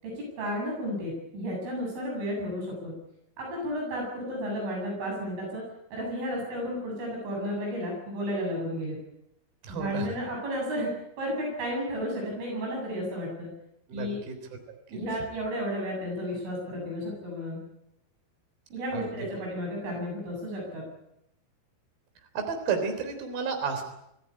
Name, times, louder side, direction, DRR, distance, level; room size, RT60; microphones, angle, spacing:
voice 1, 0.0-3.0 3.4-5.6 5.9-9.0 9.7-13.5 13.9-14.2 14.9-17.6 18.7-20.9, equal, 75° right, -1 dB, 10.5 m, -33 dB
voice 2, 9.6-10.1 13.9-14.4 14.9-15.0 18.9-19.3 22.3-23.8, right 5 dB, 50° right, 6 dB, 5.1 m, -32 dB
26.5 x 15.5 x 9.9 m, 0.83 s
omnidirectional pair, 5.6 m